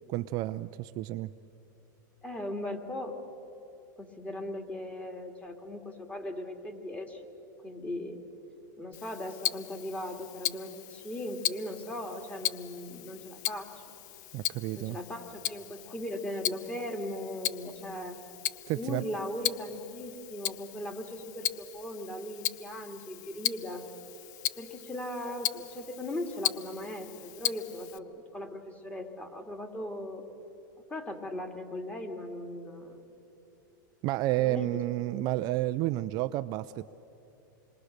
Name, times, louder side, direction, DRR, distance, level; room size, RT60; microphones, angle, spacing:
voice 1, 0.1-1.3 14.3-15.0 18.7-19.0 34.0-36.9, right 16 dB, 40° right, 10 dB, 0.5 m, -30 dB
voice 2, 2.2-3.2 4.0-7.3 7.6-8.2 8.8-13.8 14.7-18.2 18.8-23.9 24.6-30.2 30.9-33.0 34.4-34.7 35.0-35.2, left 1 dB, 10° left, 4 dB, 2.3 m, -38 dB
Tick-tock, 8.9-28.0, left 14 dB, 60° left, 0.7 m, -37 dB
28.0 x 22.5 x 6.6 m, 3.0 s
supercardioid pair, 135°, 11 cm